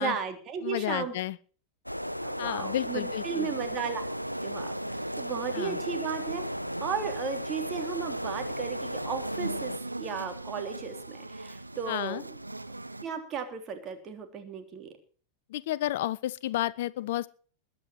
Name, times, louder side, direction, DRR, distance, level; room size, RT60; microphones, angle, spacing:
voice 1, 0.0-1.1 2.2-4.0 4.4-4.7 5.2-6.5 6.8-9.7 10.0-12.2 13.0-14.9, right 6 dB, 30° right, 6 dB, 3.3 m, -35 dB
voice 2, 0.6-1.4 2.4-3.5 5.5-5.8 11.9-12.2 15.5-17.3, left 14 dB, 55° left, 20 dB, 0.6 m, -31 dB
sound 1, 1.9-9.8, equal, 90° left, 0.7 m, -35 dB
sound 2, 3.4-13.1, right 2 dB, 85° right, 0.7 m, -41 dB
21.5 x 9.2 x 4.6 m, 0.42 s
figure-of-eight pair, 90°, 0 cm